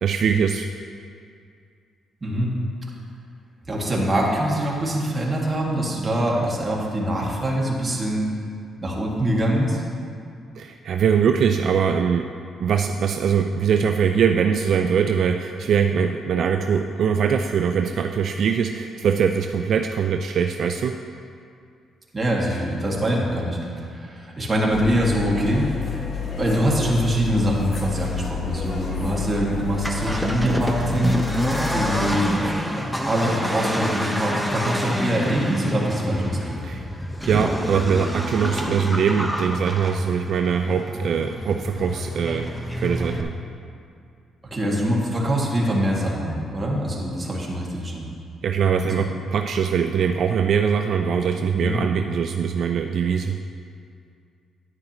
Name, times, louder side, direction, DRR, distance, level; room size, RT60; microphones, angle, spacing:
voice 1, 0.0-0.7 10.6-12.3 12.6-21.0 36.6-36.9 37.2-43.3 48.4-53.4, right 7 dB, 65° right, 5 dB, 0.3 m, -22 dB
voice 2, 2.2-2.6 3.7-8.3 8.8-9.8 22.1-26.0 26.4-31.2 31.7-32.3 32.6-36.5 44.5-48.1 48.8-49.0 51.5-51.8, equal, 20° right, -3 dB, 1.9 m, -24 dB
sound 1, 24.7-32.2, left 7 dB, 45° left, 1.0 m, -30 dB
Accelerating revving vroom, 29.7-43.2, equal, ahead, 0.8 m, -28 dB
9.8 x 9.6 x 3.0 m, 2.3 s
cardioid pair, 90°, 0 cm